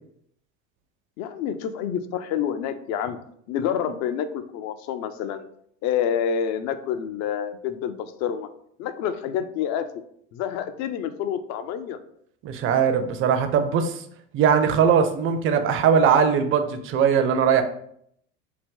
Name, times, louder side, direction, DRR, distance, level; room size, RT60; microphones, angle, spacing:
voice 1, 1.2-3.2 3.5-5.5 5.8-8.5 8.8-9.9 10.3-12.0, left 8 dB, 45° left, 10 dB, 0.4 m, -28 dB
voice 2, 12.4-14.0 14.3-17.6, right 7 dB, 35° right, 8 dB, 0.5 m, -20 dB
2.8 x 2.1 x 3.6 m, 0.68 s
hypercardioid pair, 80°, 38 cm